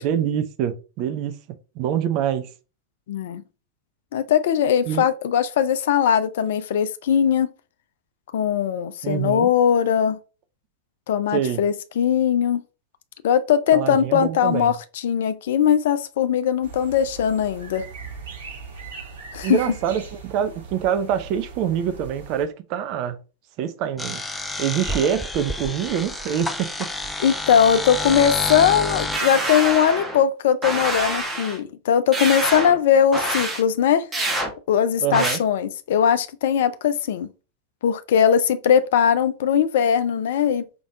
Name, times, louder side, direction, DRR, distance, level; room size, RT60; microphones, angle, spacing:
voice 1, 0.0-1.4 1.8-2.5 4.9-5.0 9.0-9.5 11.3-11.6 13.7-14.7 19.4-23.2 23.6-24.2 24.6-26.9 35.0-35.4, right 9 dB, 40° right, 0.6 m, -25 dB
voice 2, 3.1-3.4 4.1-7.5 8.3-10.2 11.1-12.6 13.2-14.8 15.0-17.8 19.3-19.6 27.2-34.1 34.7-37.3 37.8-40.6, left 8 dB, 55° left, 0.5 m, -20 dB
sound 1, 16.6-22.5, right 5 dB, 65° right, 1.8 m, -39 dB
sound 2, 24.0-29.2, left 2 dB, 5° left, 0.5 m, -29 dB
sound 3, 29.1-30.2 30.6-31.6 32.1-32.8 33.1-33.6 34.1-34.5 35.1-35.4, right 1 dB, 15° right, 1.1 m, -26 dB
5.1 x 3.4 x 2.5 m
figure-of-eight pair, 90°, 0 cm